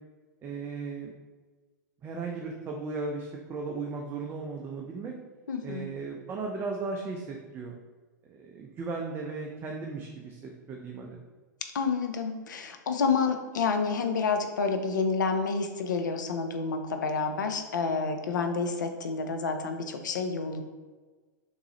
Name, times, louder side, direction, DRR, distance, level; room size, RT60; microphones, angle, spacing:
voice 1, 0.4-1.1 2.0-5.1 5.6-7.7 8.3-11.2, right 4 dB, 20° right, 1 dB, 0.4 m, -36 dB
voice 2, 5.5-5.9 11.7-20.6, left 4 dB, 75° left, 6 dB, 0.5 m, -29 dB
3.5 x 3.0 x 2.9 m, 1.3 s
hypercardioid pair, 105°, 10 cm